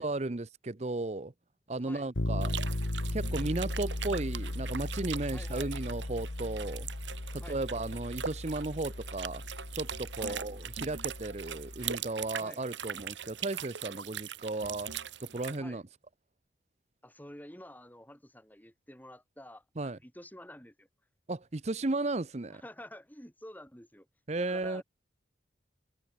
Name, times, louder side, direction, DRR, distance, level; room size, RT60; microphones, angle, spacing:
voice 1, 0.0-1.3 1.7-2.6 3.1-6.9 7.3-9.4 9.7-14.9 15.2-15.8 19.8-20.0 21.3-22.6 24.3-24.8, right 2 dB, 35° right, 0.7 m, -35 dB
sound 1, 2.1-12.0, left 1 dB, 85° left, 1.6 m, -37 dB
sound 2, 2.4-15.6, right 8 dB, 80° right, 1.5 m, -41 dB
voice 2, 5.3-5.9 7.4-7.6 10.2-10.4 12.4-12.6 15.6-15.8 17.0-20.9 22.5-24.1 24.4-24.8, left 1 dB, 10° left, 6.7 m, -49 dB
head